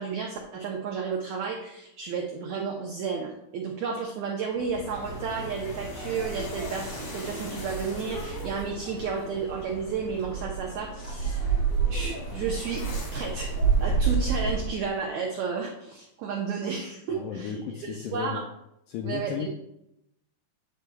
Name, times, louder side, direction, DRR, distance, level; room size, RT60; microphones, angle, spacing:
voice 1, 0.0-11.4 11.9-12.9 13.1-13.5 13.8-18.4 19.0-19.5, right 5 dB, 90° right, 0 dB, 1.6 m, -32 dB
sound 1, 4.5-14.9, right 5 dB, 65° left, 4.7 m, -30 dB
voice 2, 17.1-18.4 18.9-19.5, left 8 dB, 85° left, 2 dB, 1.9 m, -34 dB
8.4 x 7.6 x 2.3 m, 0.81 s
omnidirectional pair, 4.3 m